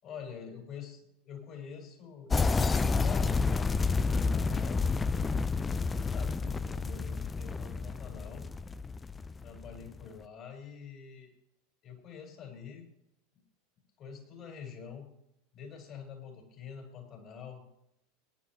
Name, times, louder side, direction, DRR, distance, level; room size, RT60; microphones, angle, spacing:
voice 1, 0.0-4.9 5.8-8.4 9.4-11.3 11.8-12.9 14.0-15.1 15.5-17.6, left 7 dB, 40° left, 2 dB, 4.7 m, -46 dB
sound 1, 2.3-10.0, left 4 dB, 15° left, 0.5 m, -30 dB
23.0 x 10.5 x 3.0 m, 0.79 s
figure-of-eight pair, 85°, 0 cm